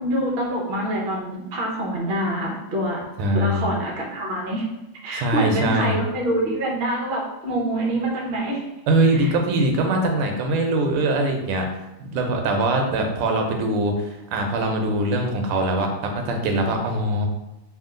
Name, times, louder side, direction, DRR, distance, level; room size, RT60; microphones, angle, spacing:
voice 1, 0.0-3.0 3.3-4.7 5.0-8.6 9.1-9.3, right 1 dB, 60° right, -2 dB, 0.6 m, -25 dB
voice 2, 3.2-3.7 5.1-6.0 8.9-11.7 12.0-17.3, right 2 dB, 90° right, 3 dB, 1.6 m, -22 dB
3.6 x 2.6 x 3.7 m, 0.96 s
omnidirectional pair, 2.4 m